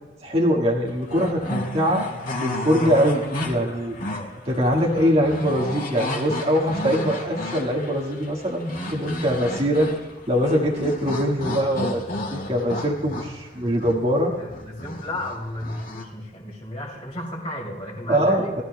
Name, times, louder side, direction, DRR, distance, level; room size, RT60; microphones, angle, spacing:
voice 1, 0.2-2.0 2.4-3.9 4.5-9.9 10.3-14.3 18.1-18.5, equal, 35° right, -2 dB, 1.6 m, -22 dB
sound 1, 0.9-16.0, left 1 dB, 50° left, 2.1 m, -33 dB
voice 2, 2.6-3.0 3.9-4.4 14.4-18.5, left 1 dB, 30° left, -5 dB, 2.7 m, -34 dB
20.0 x 14.0 x 2.2 m, 1.2 s
head